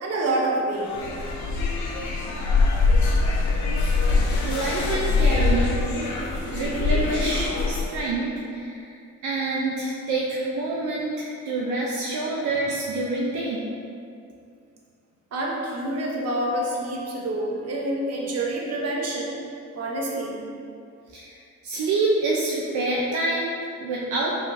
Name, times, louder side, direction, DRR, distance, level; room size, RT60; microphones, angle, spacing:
voice 1, 0.0-0.9 15.3-19.4 19.8-20.4, right 1 dB, 55° right, -2 dB, 0.9 m, -27 dB
sound 1, 0.8-8.0, left 3 dB, 70° left, 0.8 m, -23 dB
voice 2, 4.2-5.8 6.4-9.0 9.2-13.6 21.1-21.4 21.6-24.3, right 2 dB, 75° right, -4 dB, 0.6 m, -27 dB
5.5 x 3.6 x 2.6 m, 2.4 s
cardioid pair, 90°, 30 cm